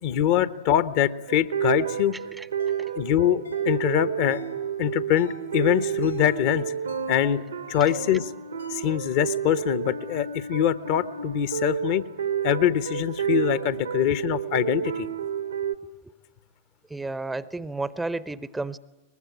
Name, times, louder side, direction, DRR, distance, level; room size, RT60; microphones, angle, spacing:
voice 1, 0.0-2.2 2.9-4.4 4.8-6.7 7.1-7.4 7.7-8.3 8.7-12.0 12.4-15.1, left 10 dB, 50° left, 14 dB, 1.1 m, -24 dB
sound 1, 1.3-15.8, right 8 dB, 75° right, 1.2 m, -30 dB
sound 2, 2.6-2.8 3.4-3.7 4.3-4.6 5.2-5.4 6.0-6.3 6.9-7.2 7.7-8.1 8.6-8.9, left 3 dB, 70° left, 5.8 m, -48 dB
voice 2, 16.9-18.8, right 2 dB, 10° right, 18 dB, 0.8 m, -32 dB
23.5 x 21.0 x 10.0 m, 1.1 s
figure-of-eight pair, 90°, 0 cm